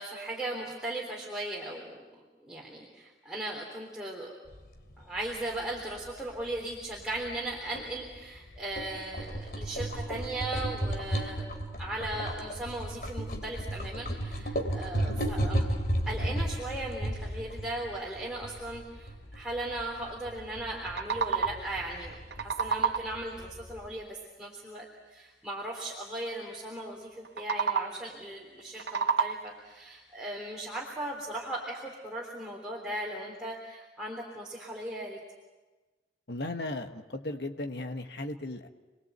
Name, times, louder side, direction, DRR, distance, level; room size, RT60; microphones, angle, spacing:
voice 1, 0.0-2.0 2.4-4.3 5.0-15.7 16.1-35.2, right 1 dB, 5° right, -4 dB, 3.5 m, -38 dB
sound 1, 4.5-24.0, right 1 dB, 55° left, 2.9 m, -35 dB
sound 2, 20.7-21.8 22.1-23.3 27.2-28.1 28.6-29.7, right 5 dB, 75° right, 0.7 m, -30 dB
voice 2, 36.3-38.7, left 2 dB, 70° left, 5 dB, 1.4 m, -36 dB
29.0 x 21.5 x 8.1 m, 1.2 s
head